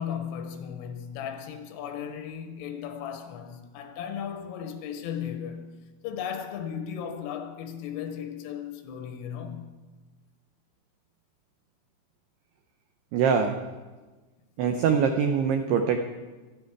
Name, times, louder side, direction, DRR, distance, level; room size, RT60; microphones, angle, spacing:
voice 1, 0.0-5.8 6.0-9.7, left 8 dB, 85° left, 3.7 m, -36 dB
voice 2, 13.1-13.6 14.6-16.1, right 6 dB, 85° right, 2.3 m, -23 dB
25.0 x 9.0 x 4.7 m
omnidirectional pair, 5.7 m